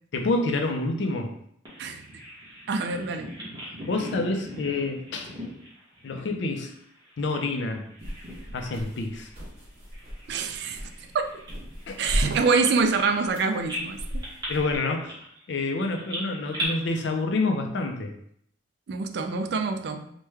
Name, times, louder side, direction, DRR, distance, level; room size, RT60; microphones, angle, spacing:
voice 1, 0.1-1.4 3.9-5.3 6.0-6.7 7.2-7.9 8.5-9.3 11.9-12.0 14.5-15.2 15.5-18.1, left 2 dB, 65° left, 4 dB, 0.4 m, -28 dB
Bird vocalization bird call bird song, 1.7-7.6 7.9-8.8 9.1-9.3 9.9-13.4 13.7-16.7, equal, 25° right, 1.0 m, -39 dB
voice 2, 2.7-3.3 10.3-10.8 11.1-11.3 12.0-14.0 18.9-20.0, right 4 dB, 60° right, 7 dB, 0.3 m, -25 dB
sound 1, 8.0-14.8, equal, 40° right, 1.2 m, -36 dB
3.1 x 2.1 x 3.3 m, 0.69 s
head